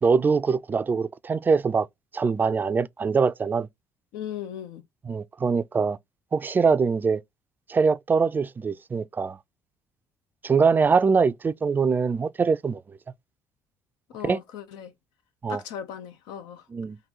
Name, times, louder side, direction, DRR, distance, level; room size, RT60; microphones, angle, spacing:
voice 1, 0.0-1.9 2.1-3.7 5.1-6.0 6.3-7.2 7.7-9.4 10.4-12.8 14.2-14.4 15.4-15.6 16.7-17.0, right 5 dB, 30° right, 0.4 m, -23 dB
voice 2, 4.1-4.8 14.1-14.9 15.5-16.6, left 9 dB, 90° left, 0.8 m, -37 dB
3.9 x 2.7 x 4.6 m
cardioid pair, 100°, 7 cm